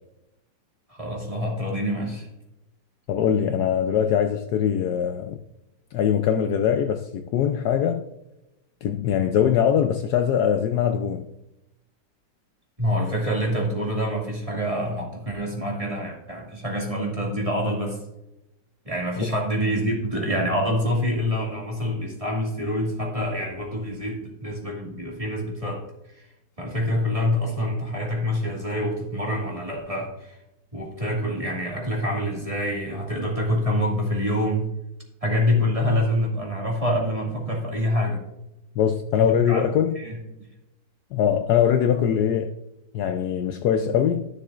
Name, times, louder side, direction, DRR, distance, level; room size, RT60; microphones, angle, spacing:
voice 1, 0.9-2.3 12.8-18.0 18.8-26.3 26.6-30.4 30.7-34.7 35.2-38.2 39.2-39.6 40.0-40.2, equal, 20° right, 2.1 m, -26 dB
voice 2, 3.1-5.4 5.9-8.0 8.8-11.3 19.2-19.3 38.8-40.0 41.1-42.5 42.9-44.3, left 8 dB, 70° left, 1.0 m, -22 dB
13.0 x 6.7 x 2.5 m
omnidirectional pair, 2.0 m